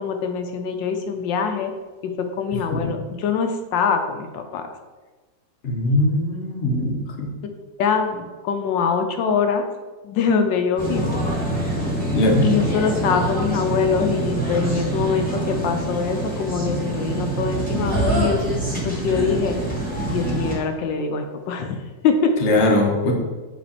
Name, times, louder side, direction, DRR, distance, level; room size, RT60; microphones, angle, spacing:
voice 1, 0.0-1.7 2.2-4.6 7.8-9.6 10.0-11.2 12.4-18.4 18.8-19.6 20.1-21.8 22.0-22.3, left 6 dB, 80° left, 5 dB, 1.3 m, -23 dB
voice 2, 2.5-3.0 5.6-7.3 12.1-12.4 22.4-23.1, left 1 dB, 45° left, 1 dB, 0.9 m, -21 dB
sound 1, 10.8-20.5, right 2 dB, 5° left, 1.4 m, -25 dB
7.3 x 3.3 x 4.1 m, 1.3 s
omnidirectional pair, 2.0 m